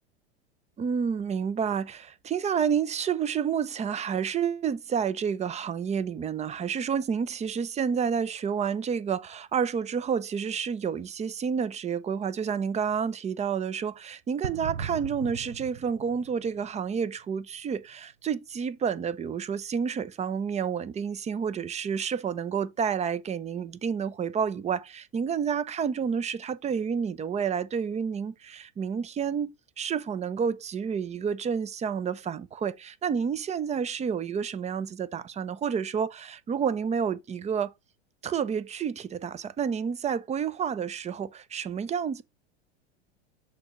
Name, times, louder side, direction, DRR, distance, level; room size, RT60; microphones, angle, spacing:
voice 1, 0.8-37.7 38.2-42.2, right 7 dB, 20° right, 0.6 m, -29 dB
sound 1, 14.4-17.1, right 8 dB, 90° right, 0.7 m, -38 dB
6.6 x 3.7 x 5.1 m
hypercardioid pair, 95°, 33 cm